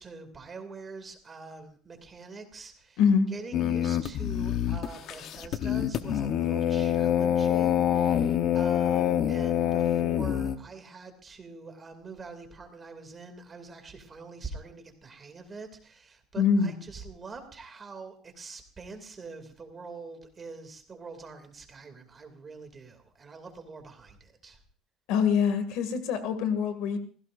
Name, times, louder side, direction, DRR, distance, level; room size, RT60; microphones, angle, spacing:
voice 1, 0.0-3.0 3.3-24.6, right 4 dB, 20° right, 6 dB, 2.5 m, -44 dB
sound 1, 3.5-10.6, left 10 dB, 45° left, 0.9 m, -26 dB
voice 2, 16.4-16.7 25.1-27.0, left 6 dB, 70° left, 9 dB, 2.2 m, -24 dB
29.0 x 16.0 x 2.6 m, 0.42 s
cardioid pair, 170°, 0 cm